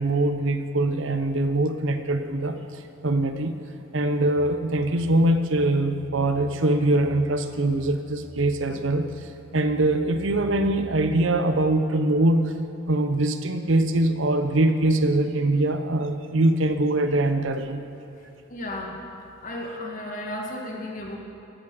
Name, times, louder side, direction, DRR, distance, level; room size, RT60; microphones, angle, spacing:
voice 1, 0.0-2.6 3.0-3.6 3.9-9.1 9.5-12.5 12.9-17.8, right 2 dB, 65° right, 9 dB, 0.8 m, -23 dB
sound 1, 4.4-11.2, equal, 15° left, 1.2 m, -45 dB
voice 2, 18.2-19.0 19.4-21.2, left 1 dB, 40° left, 0 dB, 1.9 m, -34 dB
16.5 x 8.6 x 7.1 m, 2.8 s
head